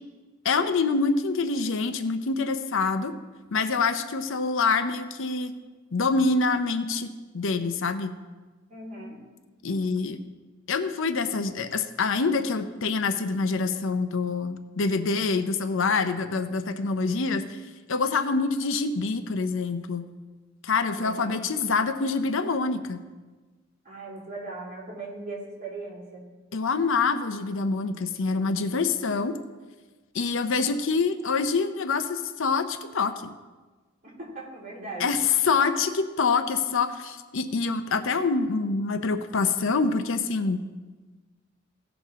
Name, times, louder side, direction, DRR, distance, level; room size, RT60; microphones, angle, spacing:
voice 1, 0.4-3.1 3.5-5.5 5.9-8.2 9.6-10.2 10.7-17.6 17.9-20.1 20.6-23.0 26.5-29.4 30.1-33.3 35.0-40.6, left 4 dB, 65° left, 9 dB, 0.6 m, -26 dB
voice 2, 8.7-9.2 20.8-21.4 23.8-26.3 34.0-35.3, right 2 dB, 40° right, -6 dB, 3.6 m, -39 dB
17.0 x 6.1 x 3.6 m, 1.3 s
head